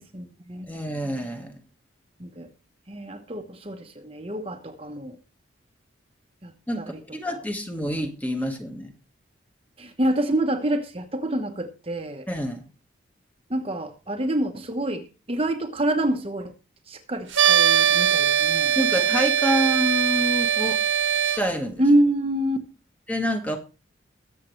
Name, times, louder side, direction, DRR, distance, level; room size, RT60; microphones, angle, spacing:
voice 1, 0.0-0.7 2.2-2.5 2.9-5.2 6.4-7.0 9.8-12.3 13.5-16.5 16.9-18.7 21.8-22.6, right 1 dB, 30° right, 1.1 m, -27 dB
voice 2, 0.7-1.6 6.7-8.9 12.3-12.6 18.7-20.8 21.2-21.8 23.1-23.6, equal, 10° left, 1.5 m, -27 dB
sound 1, 17.3-21.4, right 9 dB, 80° right, 1.5 m, -21 dB
21.5 x 7.5 x 3.2 m
head